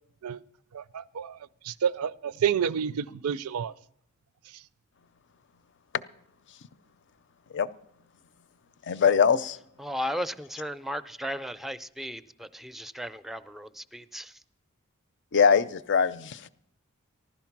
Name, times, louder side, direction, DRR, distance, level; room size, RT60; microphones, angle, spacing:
voice 1, 0.7-1.4 1.6-3.7, right 8 dB, 85° right, 0.4 m, -29 dB
voice 2, 8.9-9.6 15.3-16.5, left 6 dB, 55° left, 0.6 m, -22 dB
voice 3, 9.8-14.4, equal, ahead, 0.4 m, -35 dB
15.5 x 12.0 x 5.9 m
head